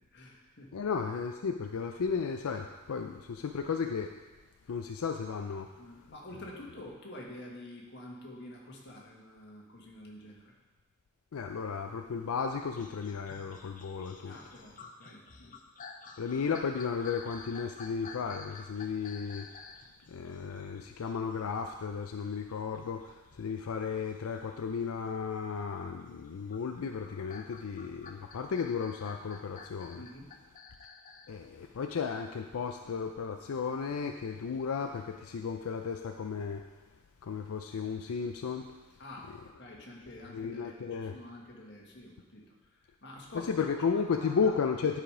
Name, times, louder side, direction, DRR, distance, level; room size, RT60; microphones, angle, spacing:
voice 1, 0.1-0.9 5.8-10.5 14.2-15.6 30.0-30.3 39.0-43.5 43.9-44.5, left 1 dB, 55° left, -2 dB, 1.6 m, -48 dB
voice 2, 0.7-4.1 4.7-5.7 11.3-14.3 16.2-19.5 20.1-30.0 31.3-36.6 37.2-38.7 40.3-41.2 43.4-45.0, left 6 dB, 90° left, 4 dB, 0.4 m, -34 dB
sound 1, 12.7-25.1 25.8-31.3 31.8-31.9, left 4 dB, 40° left, 0.6 m, -51 dB
10.5 x 5.0 x 4.9 m, 1.2 s
head